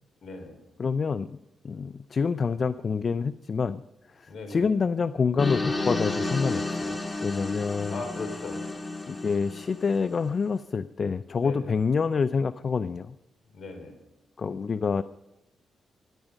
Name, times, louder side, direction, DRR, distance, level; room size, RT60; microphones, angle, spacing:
voice 1, 0.2-0.6 4.2-4.7 7.9-8.6 11.3-11.7 13.5-14.0, left 3 dB, 65° left, 6 dB, 4.3 m, -39 dB
voice 2, 0.8-1.4 1.6-3.8 4.2-8.0 9.1-13.2 14.4-15.0, left 5 dB, 50° left, 14 dB, 0.5 m, -27 dB
sound 1, 5.4-10.3, left 2 dB, 30° left, 5.0 m, -32 dB
23.5 x 11.0 x 5.3 m, 0.95 s
supercardioid pair, 50°, 0 cm